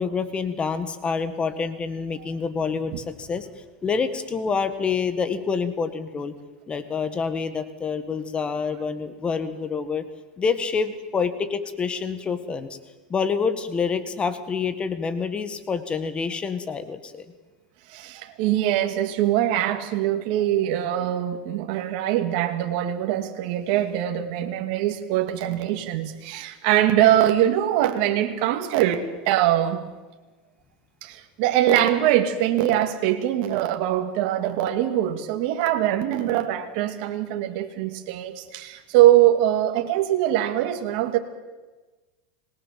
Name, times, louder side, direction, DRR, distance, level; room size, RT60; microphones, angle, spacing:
voice 1, 0.0-6.3 6.7-10.0 10.4-12.7 13.1-17.3, left 5 dB, 20° left, 11 dB, 1.8 m, -27 dB
voice 2, 17.9-29.8 31.0-41.2, right 12 dB, 60° right, 6 dB, 2.4 m, -22 dB
26.0 x 19.5 x 7.6 m, 1.2 s
supercardioid pair, 125°, 5 cm